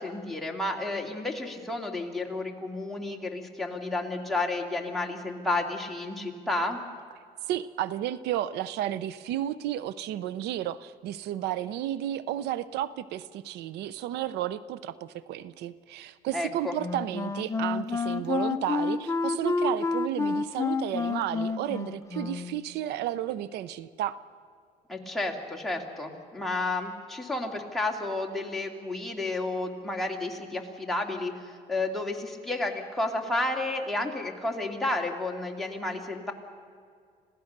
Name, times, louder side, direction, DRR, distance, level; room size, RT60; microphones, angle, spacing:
voice 1, 0.0-6.8 16.3-16.7 24.9-36.3, left 2 dB, ahead, 0 dB, 2.6 m, -31 dB
voice 2, 7.5-24.1, right 12 dB, 80° right, 17 dB, 0.6 m, -32 dB
Wind instrument woodwind instrument, 16.8-22.7, left 4 dB, 15° left, 0.8 m, -29 dB
26.5 x 16.5 x 6.6 m, 2.2 s
cardioid pair, 110°, 17 cm